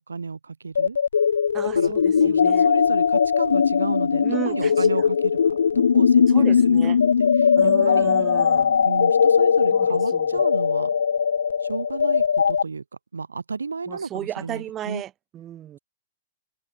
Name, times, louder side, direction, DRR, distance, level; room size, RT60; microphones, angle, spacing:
voice 1, 0.1-1.0 1.7-6.9 7.2-8.1 8.8-10.9 11.6-12.8 13.1-15.0, right 4 dB, 75° right, 6.3 m, -33 dB
sound 1, 0.7-12.6, left 6 dB, 70° left, 0.6 m, -19 dB
voice 2, 1.5-2.7 4.2-4.9 6.3-7.0 7.6-8.9 9.7-10.4 13.9-15.8, right 11 dB, 25° right, 3.5 m, -34 dB
open air
figure-of-eight pair, 100°, 0 cm